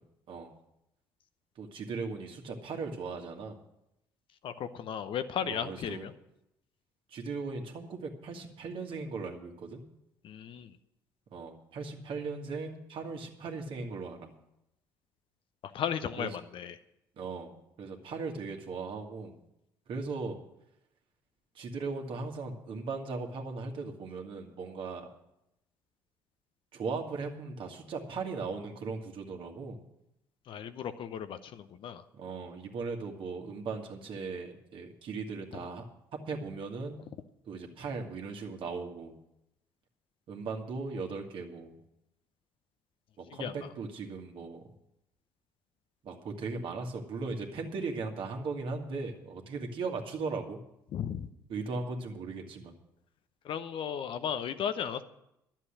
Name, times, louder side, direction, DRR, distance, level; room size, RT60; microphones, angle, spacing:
voice 1, 1.6-3.6 5.4-6.1 7.1-9.8 11.3-14.3 16.2-16.4 17.2-19.4 19.9-20.4 21.6-25.1 26.7-29.8 32.1-35.8 36.1-37.0 37.4-39.2 40.3-41.8 43.2-44.6 46.0-50.6 51.5-52.8, right 4 dB, 55° right, 2 dB, 1.9 m, -38 dB
voice 2, 4.4-6.1 10.2-10.7 15.7-16.7 30.5-32.0 43.4-43.5 50.9-51.3 53.4-55.0, left 8 dB, 55° left, 11 dB, 0.8 m, -35 dB
11.5 x 7.4 x 8.8 m, 0.83 s
hypercardioid pair, 50°, 10 cm